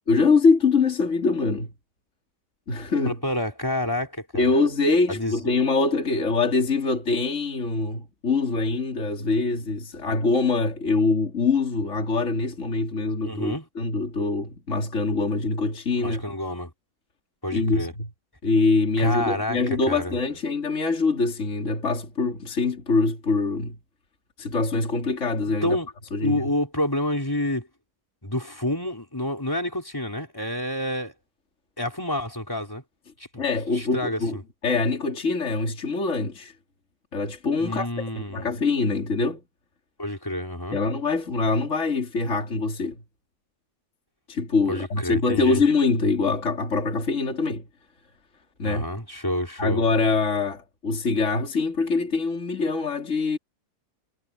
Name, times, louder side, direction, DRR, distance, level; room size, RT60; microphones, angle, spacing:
voice 1, 0.1-1.7 2.7-3.2 4.3-16.2 17.5-18.1 18.4-23.8 24.4-25.8 26.1-26.4 33.4-34.4 34.6-36.5 37.1-37.9 38.2-39.4 40.7-43.0 44.3-47.6 48.6-48.9 49.6-53.4, left 3 dB, 45° left, 3.2 m, -24 dB
voice 2, 3.0-4.5 5.1-5.3 5.6-5.7 13.2-13.6 16.0-16.7 17.4-17.9 19.0-20.1 25.6-25.9 26.2-27.7 28.2-31.1 31.8-32.8 33.3-33.4 33.7-34.4 37.6-38.5 40.0-40.8 44.7-45.6 48.6-49.8, left 1 dB, 10° left, 5.1 m, -28 dB
omnidirectional pair, 1.8 m